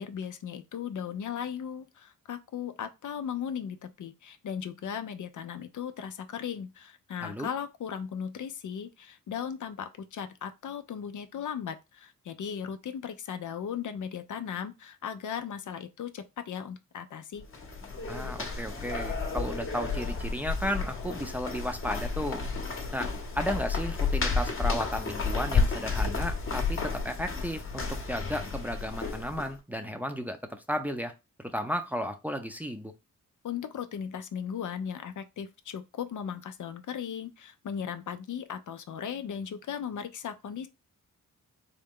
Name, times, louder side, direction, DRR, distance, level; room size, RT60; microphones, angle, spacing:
voice 1, 0.0-17.5 33.4-40.7, left 8 dB, 60° left, 0.5 m, -37 dB
sound 1, 17.4-29.5, left 4 dB, 40° left, 1.0 m, -31 dB
voice 2, 18.1-22.4 22.9-31.1 31.4-32.9, equal, 5° right, 0.6 m, -34 dB
3.9 x 2.2 x 3.6 m
cardioid pair, 65°, 33 cm